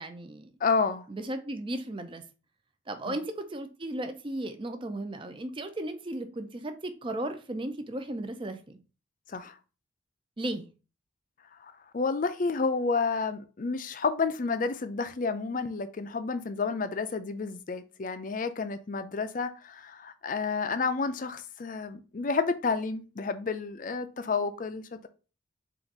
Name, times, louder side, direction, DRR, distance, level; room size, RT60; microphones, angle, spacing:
voice 1, 0.0-0.5 1.1-2.2 2.9-8.8 10.4-10.7, right 1 dB, 25° right, 0.4 m, -35 dB
voice 2, 0.6-1.1 3.1-3.2 9.3-9.6 11.6-25.1, left 4 dB, 40° left, 0.4 m, -30 dB
4.0 x 2.5 x 4.6 m
head